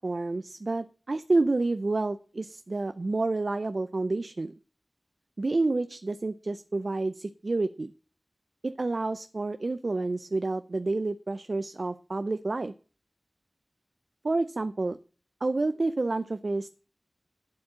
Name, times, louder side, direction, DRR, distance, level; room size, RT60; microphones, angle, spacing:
voice 1, 0.0-4.5 5.4-7.9 8.6-12.7 14.2-15.0 15.4-16.7, right 2 dB, 60° right, 12 dB, 0.6 m, -29 dB
8.7 x 7.7 x 7.5 m, 0.39 s
cardioid pair, 40°, 0 cm